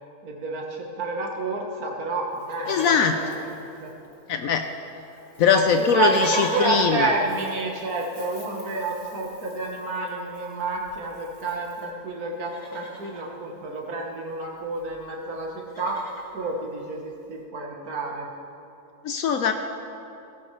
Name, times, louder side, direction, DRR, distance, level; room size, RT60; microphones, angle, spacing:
voice 1, 0.2-3.9 5.5-16.1 16.3-18.3, right 3 dB, 85° right, -1 dB, 1.8 m, -29 dB
Livestock farm animals working animals, 2.4-4.4 4.6-4.7 5.0-11.9 12.3-13.2 14.5-14.6 14.7-15.0 15.4-16.3 16.9-17.0, left 1 dB, 30° left, 1.9 m, -39 dB
voice 2, 2.7-3.2 4.3-4.7 5.4-7.1 19.0-19.5, left 6 dB, 75° left, 6 dB, 1.0 m, -21 dB
17.0 x 16.0 x 3.2 m, 2.8 s
omnidirectional pair, 1.5 m